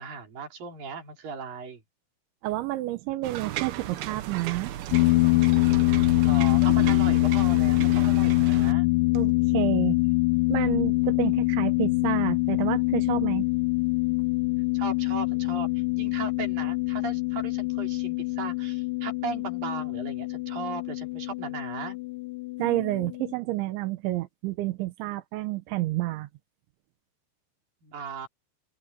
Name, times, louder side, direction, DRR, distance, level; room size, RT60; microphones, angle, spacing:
voice 1, 0.0-1.8 6.2-8.9 14.7-22.0 27.8-28.3, right 5 dB, 50° right, 5.8 m, -37 dB
voice 2, 2.4-4.7 9.1-10.0 10.5-13.5 22.6-26.3, right 17 dB, 90° right, 3.4 m, -29 dB
sound 1, 3.2-8.7, right 12 dB, 70° right, 2.6 m, -35 dB
sound 2, 4.9-23.3, left 23 dB, 85° left, 3.2 m, -24 dB
omnidirectional pair, 5.2 m